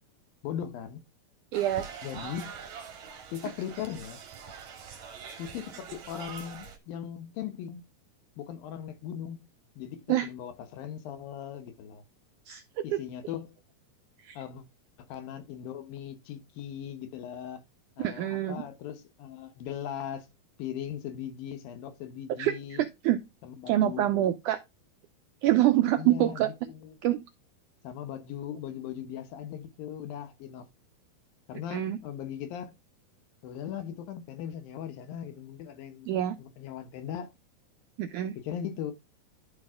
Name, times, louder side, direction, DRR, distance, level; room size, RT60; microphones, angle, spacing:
voice 1, 0.4-1.0 2.0-2.5 3.3-4.2 5.4-7.8 8.4-9.5 9.8-12.0 12.8-13.6 14.4-14.6 15.0-17.6 18.0-20.3 20.6-22.9 23.4-24.3 26.0-27.0 27.8-30.7 31.5-32.7 33.4-36.1 36.4-37.3 38.4-38.9, left 9 dB, 75° left, 2.6 m, -39 dB
sound 1, 1.5-6.8, right 6 dB, 55° right, 3.0 m, -44 dB
voice 2, 1.5-1.9 10.1-10.3 12.5-13.0 14.2-14.4 18.0-18.6 22.4-23.2 23.7-24.6 25.4-26.5 27.0-27.2 31.7-32.0 36.1-36.4 38.0-38.4, right 13 dB, 90° right, 1.8 m, -26 dB
11.5 x 5.3 x 3.6 m
omnidirectional pair, 4.4 m